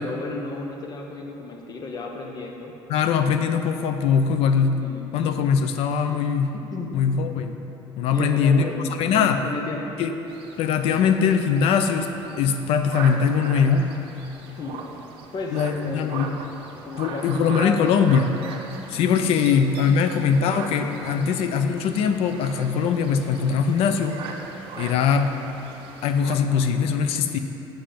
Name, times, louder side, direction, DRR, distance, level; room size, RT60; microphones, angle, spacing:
voice 1, 0.0-2.8 4.8-5.1 6.5-7.1 8.1-10.0 14.6-15.0 15.3-16.3 16.9-18.0 19.9-21.4, left 3 dB, 40° left, 1 dB, 1.0 m, -34 dB
voice 2, 2.9-4.8 5.1-6.5 6.9-7.6 8.0-8.6 9.0-9.4 10.0-10.1 10.6-12.1 12.4-13.9 15.5-16.3 17.0-18.3 18.9-24.2 24.8-25.3 26.0-27.4, left 6 dB, 75° left, 7 dB, 0.5 m, -21 dB
sound 1, 10.3-26.3, right 4 dB, 65° right, 0.8 m, -39 dB
7.6 x 5.7 x 5.2 m, 2.9 s
cardioid pair, 130°, 10 cm